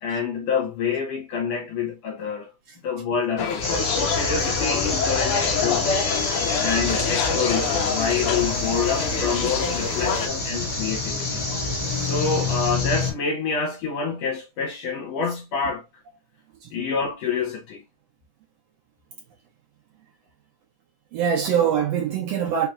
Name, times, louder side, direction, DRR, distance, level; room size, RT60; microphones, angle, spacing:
voice 1, 0.0-2.5 2.8-6.1 6.6-11.4 12.0-15.8 16.7-17.8, left 5 dB, 70° left, 1.9 m, -27 dB
sound 1, 3.4-10.3, left 6 dB, 90° left, 1.2 m, -26 dB
sound 2, 3.6-13.1, left 2 dB, 30° left, 1.3 m, -27 dB
sound 3, 6.1-12.7, equal, 55° right, 0.7 m, -42 dB
voice 2, 21.1-22.7, right 8 dB, 70° right, 1.7 m, -24 dB
4.7 x 3.2 x 2.5 m
omnidirectional pair, 3.3 m